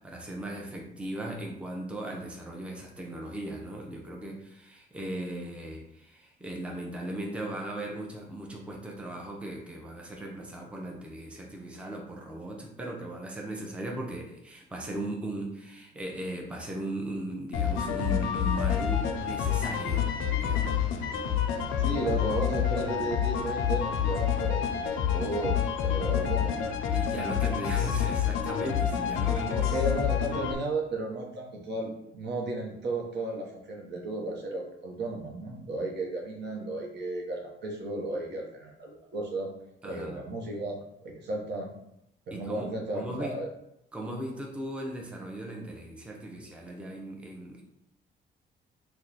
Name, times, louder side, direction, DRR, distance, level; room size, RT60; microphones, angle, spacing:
voice 1, 0.0-20.1 20.4-20.8 26.9-29.7 39.8-40.2 42.3-43.3 43.9-47.6, right 1 dB, 5° right, -1 dB, 0.6 m, -37 dB
sound 1, 17.5-30.5, left 8 dB, 90° left, 0.4 m, -28 dB
voice 2, 21.8-24.8 25.1-26.7 29.6-39.5 39.8-40.8 41.0-41.7 42.3-43.5, right 2 dB, 60° right, 0 dB, 0.9 m, -34 dB
3.0 x 2.2 x 3.8 m, 0.79 s
cardioid pair, 90°, 20 cm